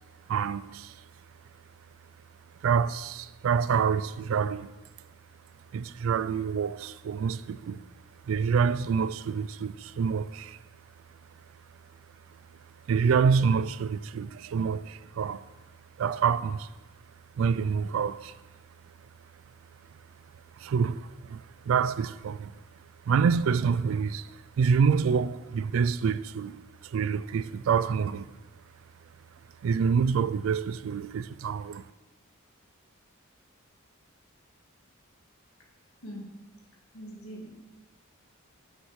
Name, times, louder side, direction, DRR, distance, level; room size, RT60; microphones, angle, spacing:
voice 1, 0.3-1.0 2.6-4.8 5.7-7.8 8.3-10.6 12.9-15.4 16.0-16.7 17.4-18.3 20.6-22.6 23.1-28.3 29.6-31.8, right 6 dB, 65° right, 0.3 m, -27 dB
voice 2, 36.9-37.6, equal, 80° left, 2.0 m, -42 dB
8.1 x 6.2 x 4.9 m
head